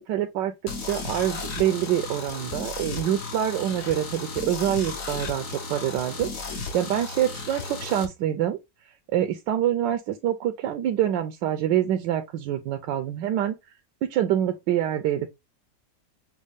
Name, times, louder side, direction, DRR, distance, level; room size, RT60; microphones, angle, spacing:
voice 1, 0.1-0.5 0.8-8.6 9.1-13.5 14.0-15.3, right 11 dB, 80° right, 1.3 m, -26 dB
sound 1, 0.7-8.1, left 3 dB, 50° left, 1.2 m, -34 dB
6.3 x 2.3 x 3.4 m
omnidirectional pair, 1.9 m